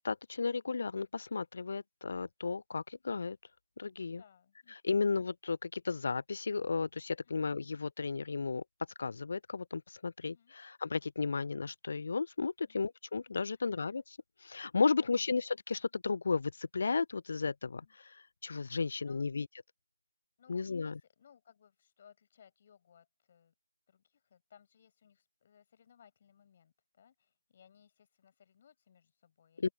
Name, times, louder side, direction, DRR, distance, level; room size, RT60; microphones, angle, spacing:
voice 1, 0.0-3.4 3.8-4.2 4.7-8.6 9.0-19.5 20.5-21.0 29.6-29.7, left 4 dB, 45° left, 0.4 m, -34 dB
voice 2, 4.1-5.0 10.2-10.5 12.6-12.8 13.6-13.9 15.0-15.3 17.6-17.9 18.8-19.3 20.4-23.5 23.9-29.7, left 8 dB, 30° left, 7.4 m, -64 dB
open air
figure-of-eight pair, 155°, 0 cm